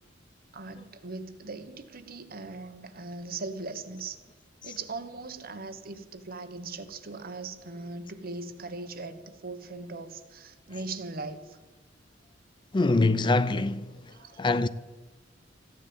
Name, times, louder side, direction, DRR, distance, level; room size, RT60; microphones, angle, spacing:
voice 1, 0.5-4.2 4.6-11.6 14.1-14.7, right 3 dB, 50° right, 1.2 m, -39 dB
voice 2, 12.7-13.9 14.4-14.7, left 2 dB, 25° left, 0.5 m, -23 dB
14.0 x 10.5 x 8.8 m
head